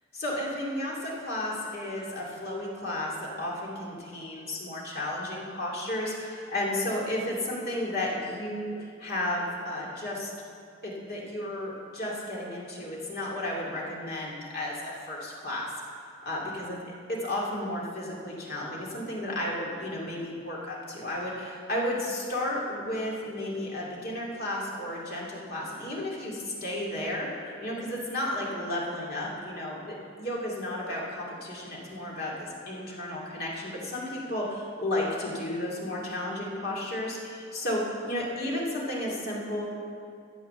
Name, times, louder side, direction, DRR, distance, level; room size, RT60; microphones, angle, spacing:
voice 1, 0.1-10.3 10.8-15.7 16.2-16.8 17.1-39.7, left 1 dB, 45° left, -4 dB, 2.5 m, -33 dB
12.5 x 8.1 x 6.7 m, 2.3 s
head